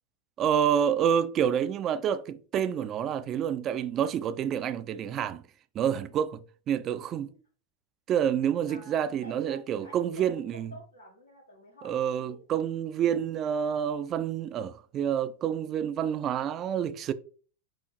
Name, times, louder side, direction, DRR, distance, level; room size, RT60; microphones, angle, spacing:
voice 1, 0.4-5.4 5.7-7.3 8.1-10.7 11.8-17.1, right 9 dB, 30° right, 0.3 m, -28 dB
voice 2, 8.7-12.4, right 1 dB, 90° left, 0.9 m, -49 dB
4.7 x 2.4 x 3.1 m
figure-of-eight pair, 90°, 0 cm